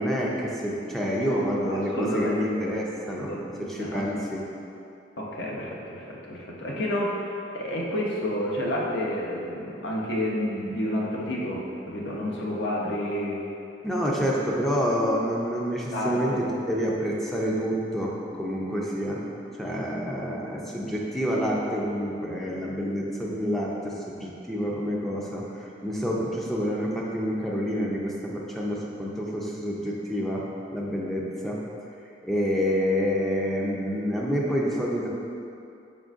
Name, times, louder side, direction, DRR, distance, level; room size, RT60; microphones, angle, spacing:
voice 1, 0.0-3.3 3.6-4.4 13.8-19.2 19.6-30.4 30.7-31.6 32.2-35.1, equal, ahead, -4 dB, 0.4 m, -28 dB
voice 2, 1.3-2.5 3.3-4.1 5.2-7.2 7.5-13.4 15.9-16.4, left 1 dB, 70° left, -3 dB, 0.7 m, -30 dB
5.2 x 3.8 x 2.4 m, 2.7 s
head